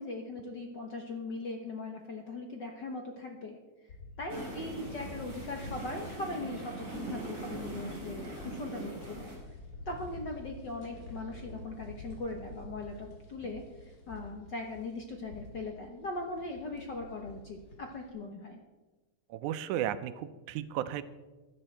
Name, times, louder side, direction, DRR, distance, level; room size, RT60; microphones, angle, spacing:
voice 1, 0.0-3.6 4.2-9.3 9.9-18.6, left 2 dB, 60° left, 2 dB, 1.1 m, -40 dB
sound 1, 3.9-18.1, left 1 dB, 40° left, 2.5 m, -48 dB
sound 2, 4.3-9.4, right 2 dB, 30° right, 5.3 m, -42 dB
voice 2, 19.3-21.0, right 11 dB, 90° right, 13 dB, 2.1 m, -34 dB
16.0 x 11.5 x 4.5 m, 1.2 s
omnidirectional pair, 3.3 m